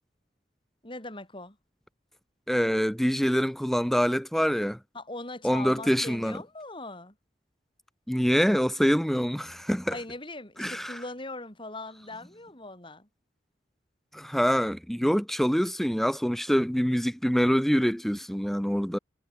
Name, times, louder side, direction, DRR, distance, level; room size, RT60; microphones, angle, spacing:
voice 1, 0.8-1.6 4.9-7.1 9.9-13.1, left 2 dB, 30° left, 6.6 m, -40 dB
voice 2, 2.5-4.8 5.4-6.4 8.1-10.0 10.6-11.0 14.1-19.0, equal, ahead, 1.0 m, -25 dB
head